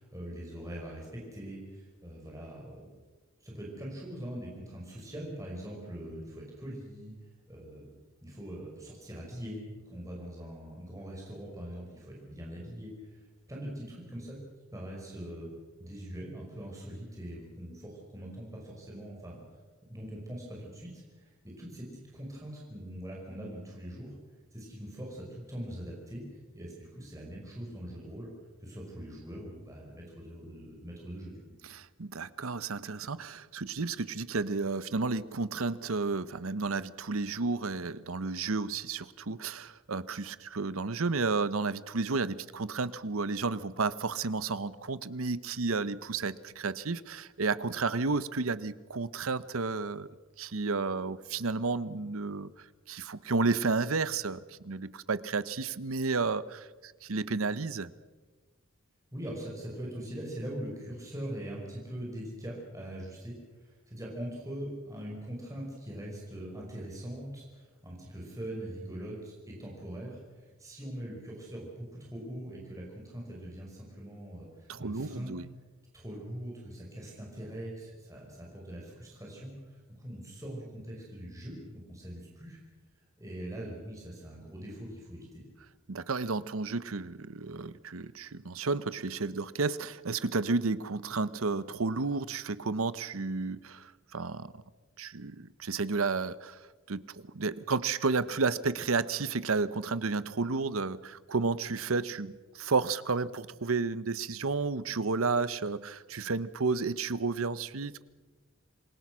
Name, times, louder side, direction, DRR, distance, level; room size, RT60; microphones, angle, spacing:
voice 1, 0.0-2.9 3.4-7.1 7.5-7.9 8.2-13.2 13.5-14.4 14.7-15.5 15.8-19.4 19.9-24.1 24.5-26.2 26.5-28.3 28.6-31.4 59.1-75.3 75.9-82.6 83.2-85.5, right 1 dB, 15° right, -2 dB, 5.4 m, -42 dB
voice 2, 31.6-50.1 50.4-57.9 74.7-75.4 85.9-94.6 95.0-96.6 96.9-108.0, right 4 dB, 90° right, 16 dB, 0.9 m, -32 dB
27.5 x 21.5 x 6.2 m, 1.3 s
head